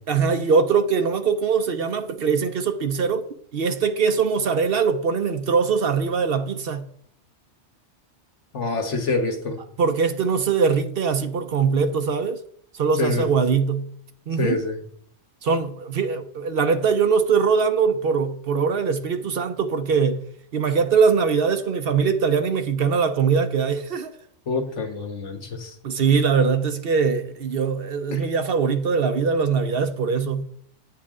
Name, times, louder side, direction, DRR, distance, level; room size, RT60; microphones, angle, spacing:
voice 1, 0.1-3.2 3.5-6.9 9.8-12.4 12.7-13.9 14.3-14.6 15.4-20.2 20.5-24.1 25.8-30.4, right 5 dB, 60° right, 0.8 m, -22 dB
voice 2, 8.5-9.6 13.0-13.3 14.4-14.8 24.5-25.8 28.1-28.3, left 3 dB, 75° left, 1.7 m, -26 dB
8.9 x 8.5 x 3.7 m
omnidirectional pair, 1.2 m